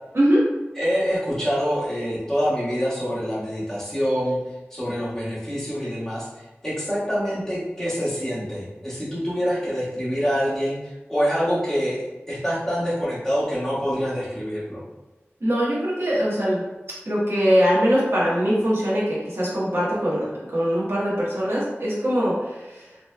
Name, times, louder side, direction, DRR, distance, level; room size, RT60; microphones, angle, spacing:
voice 1, 0.7-4.4 4.7-6.3 6.6-10.8 11.1-14.8, equal, 10° left, -9 dB, 1.4 m, -25 dB
voice 2, 15.4-16.6 17.1-20.2 20.5-22.9, equal, 65° right, -8 dB, 1.0 m, -22 dB
3.2 x 3.1 x 2.2 m, 1.1 s
wide cardioid pair, 50°, 5 cm